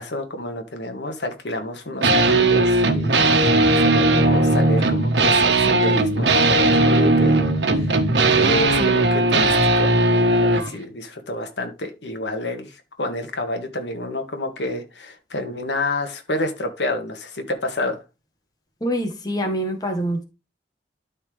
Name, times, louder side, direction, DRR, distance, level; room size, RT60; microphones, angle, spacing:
voice 1, 0.0-3.2 3.8-7.5 7.8-8.0 8.3-18.0, left 1 dB, 80° left, 1.7 m, -29 dB
sound 1, 2.0-10.7, right 2 dB, 90° right, 1.3 m, -17 dB
voice 2, 18.8-20.2, equal, 20° left, 1.6 m, -25 dB
12.5 x 4.4 x 3.3 m
head